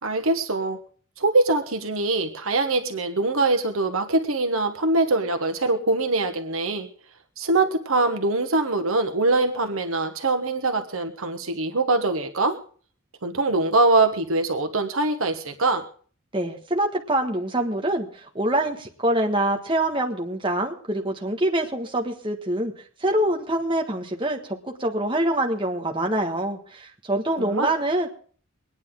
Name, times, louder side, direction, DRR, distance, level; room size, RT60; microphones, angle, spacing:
voice 1, 0.0-0.8 1.2-6.9 7.4-12.6 13.2-15.8 27.4-27.7, right 2 dB, 80° right, 6 dB, 1.3 m, -23 dB
voice 2, 16.3-22.7 23.0-28.1, right 1 dB, 25° right, 2 dB, 1.5 m, -25 dB
24.0 x 9.6 x 3.7 m, 0.43 s
head